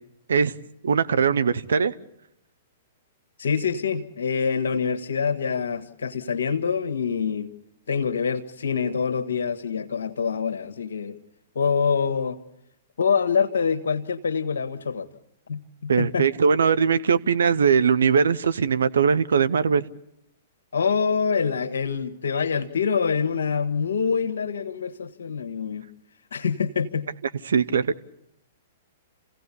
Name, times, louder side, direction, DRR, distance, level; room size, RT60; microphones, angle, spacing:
voice 1, 0.8-1.9 15.9-19.8 27.5-28.0, right 6 dB, 75° right, 13 dB, 0.8 m, -20 dB
voice 2, 3.4-7.5 7.9-11.2 11.5-12.4 13.0-15.1 15.5-16.3 20.7-25.8 26.3-27.1, left 6 dB, 70° left, 11 dB, 1.5 m, -25 dB
28.5 x 16.5 x 8.4 m, 0.82 s
figure-of-eight pair, 110°, 0 cm